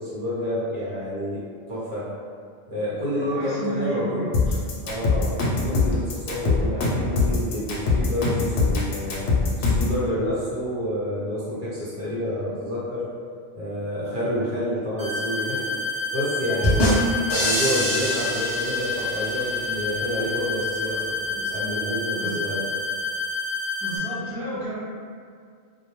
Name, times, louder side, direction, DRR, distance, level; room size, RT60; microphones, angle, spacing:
voice 1, 0.0-2.1 2.7-4.3 4.8-9.3 9.6-13.1 13.5-22.6, equal, 55° right, -10 dB, 0.9 m, -29 dB
voice 2, 3.2-4.6 22.1-22.5 23.8-24.8, right 2 dB, 30° right, -10 dB, 0.6 m, -32 dB
sound 1, 4.3-10.0, left 3 dB, 75° left, 0.8 m, -22 dB
sound 2, 15.0-24.0, left 3 dB, 75° right, 1.0 m, -29 dB
sound 3, 16.6-19.5, equal, 40° left, 0.4 m, -24 dB
2.2 x 2.1 x 2.9 m, 2.1 s
omnidirectional pair, 1.1 m